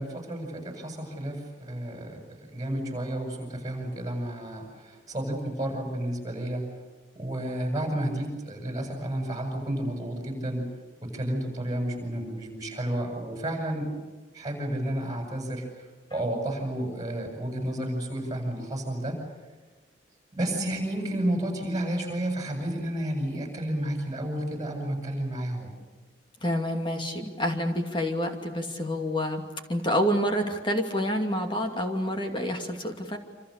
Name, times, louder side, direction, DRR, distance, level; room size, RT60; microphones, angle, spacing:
voice 1, 0.0-2.2 2.5-6.7 7.1-10.7 11.0-13.9 14.3-15.7 16.1-19.2 20.3-25.7, right 1 dB, 20° right, 2 dB, 7.8 m, -31 dB
voice 2, 26.4-33.2, equal, 25° left, 4 dB, 2.6 m, -28 dB
28.0 x 27.5 x 6.8 m, 1.3 s
head